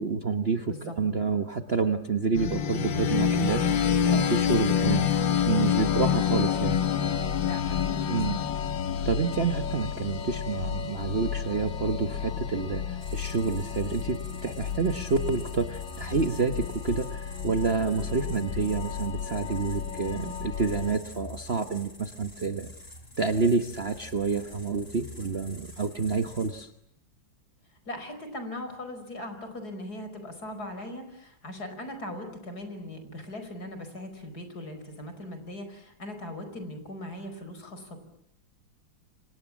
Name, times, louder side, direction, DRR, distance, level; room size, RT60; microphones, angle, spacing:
voice 1, 0.0-3.7 4.0-5.1 5.4-6.9 8.1-8.4 9.0-22.7 23.2-26.7, right 4 dB, 35° right, 7 dB, 1.3 m, -28 dB
sound 1, 2.3-21.0, left 8 dB, 70° left, 2.0 m, -29 dB
voice 2, 7.4-8.5 27.9-38.0, left 1 dB, 50° left, 8 dB, 5.6 m, -39 dB
sound 2, 13.0-26.6, left 1 dB, 30° left, 5.2 m, -47 dB
29.5 x 25.5 x 7.3 m, 0.74 s
omnidirectional pair, 2.1 m